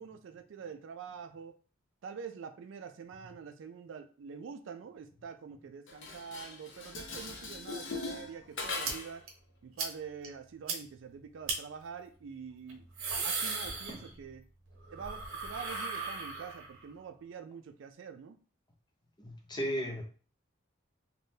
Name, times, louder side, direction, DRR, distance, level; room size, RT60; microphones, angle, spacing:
voice 1, 0.0-1.5 2.0-9.3 9.6-12.9 13.2-14.4 14.9-18.4, right 6 dB, 65° right, 8 dB, 0.3 m, -46 dB
Dishes pots and pans, 5.9-9.2, left 3 dB, 65° left, 0.6 m, -40 dB
sound 1, 8.8-8.9 9.3-9.4 9.8-9.9 10.2-10.3 10.7-10.8 11.5-11.6 12.7-14.4 14.7-16.8, right 4 dB, 85° right, 0.7 m, -36 dB
voice 2, 19.2-20.0, equal, 20° left, 2 dB, 0.5 m, -35 dB
3.3 x 2.1 x 2.7 m, 0.40 s
head